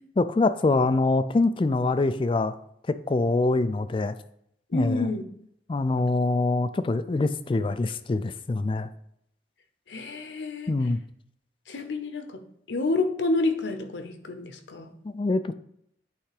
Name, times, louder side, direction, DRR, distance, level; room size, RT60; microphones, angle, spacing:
voice 1, 0.2-2.5 2.9-4.2 4.7-5.1 5.7-8.9 10.7-11.0 15.0-15.5, left 3 dB, 30° left, 12 dB, 0.3 m, -24 dB
voice 2, 4.7-5.2 9.9-10.7 11.7-12.4 12.7-14.9, left 2 dB, 90° left, 8 dB, 0.8 m, -29 dB
8.5 x 3.4 x 4.9 m, 0.73 s
head